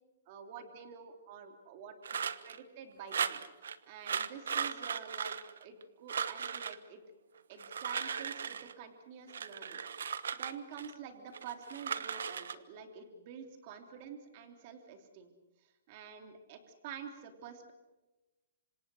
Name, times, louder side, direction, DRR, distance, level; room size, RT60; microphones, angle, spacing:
voice 1, 0.3-2.2 2.4-3.4 3.9-7.0 7.5-9.8 10.3-15.3 15.6-17.7, right 7 dB, 40° right, 6 dB, 3.2 m, -48 dB
sound 1, 2.0-2.6 3.1-3.8 4.0-5.8 6.1-6.8 7.5-8.7 9.3-10.9 11.3-12.5, right 7 dB, 90° right, 1.2 m, -37 dB
26.5 x 26.5 x 6.4 m, 1.1 s
hypercardioid pair, 160°, 0 cm